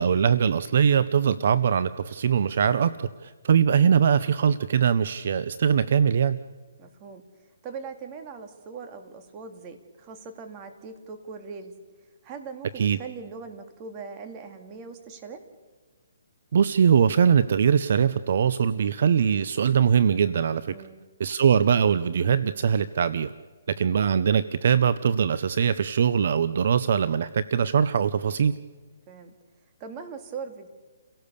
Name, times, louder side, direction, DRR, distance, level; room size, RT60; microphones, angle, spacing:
voice 1, 0.0-6.4 12.8-13.0 16.5-20.7 21.2-23.3 23.7-28.6, right 7 dB, 55° right, 15 dB, 0.7 m, -22 dB
voice 2, 6.8-11.7 12.2-15.4 20.7-21.0 29.1-29.3 29.8-30.7, right 5 dB, 25° right, 6 dB, 2.3 m, -40 dB
29.5 x 17.0 x 6.9 m, 1.4 s
hypercardioid pair, 160°, 0 cm